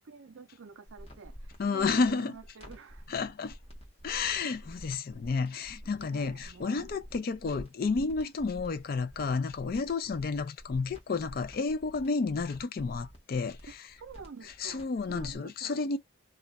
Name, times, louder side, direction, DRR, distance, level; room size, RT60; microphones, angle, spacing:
voice 1, 0.0-3.3 6.0-6.9 14.0-15.8, right 5 dB, 65° right, 0.5 m, -49 dB
sound 1, 0.9-15.4, equal, 30° left, 0.9 m, -49 dB
voice 2, 1.6-2.4 3.1-3.6 4.0-13.8 14.6-16.0, left 4 dB, 45° left, 0.4 m, -31 dB
2.4 x 2.2 x 3.9 m
head